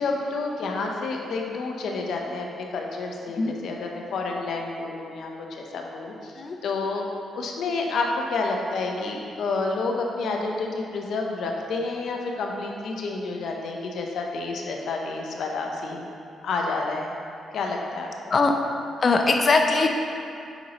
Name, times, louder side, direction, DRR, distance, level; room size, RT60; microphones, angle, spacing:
voice 1, 0.0-6.3 6.6-7.1 7.3-16.1 16.4-17.1 17.5-18.4, left 3 dB, 75° left, 1 dB, 0.8 m, -29 dB
voice 2, 19.0-19.9, left 3 dB, 50° left, 3 dB, 0.5 m, -20 dB
8.0 x 5.4 x 3.0 m, 2.5 s
supercardioid pair, 65°, 0 cm